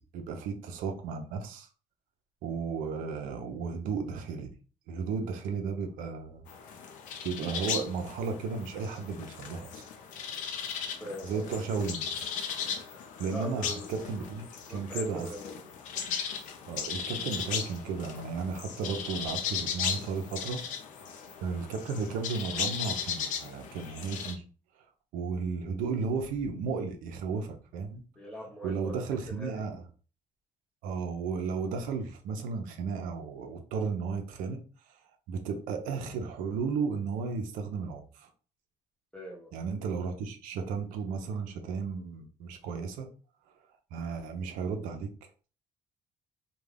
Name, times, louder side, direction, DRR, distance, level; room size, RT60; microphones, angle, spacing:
voice 1, 0.0-1.7 2.4-4.5 4.9-6.4 7.2-9.9 11.2-12.2 13.2-15.3 16.7-20.6 21.1-24.4 25.1-28.0 28.6-29.8 30.8-34.6 34.9-35.0 35.3-38.3 39.5-43.1 43.9-45.1, right 5 dB, 85° right, 5 dB, 0.5 m, -34 dB
sound 1, 6.5-24.3, left 7 dB, 70° left, 0.5 m, -37 dB
voice 2, 11.0-11.5 13.3-13.9 14.2-14.3 14.7-15.7 28.2-29.6 39.1-39.5, equal, 5° left, -3 dB, 0.9 m, -42 dB
2.3 x 2.2 x 3.2 m, 0.38 s
cardioid pair, 100°, 14 cm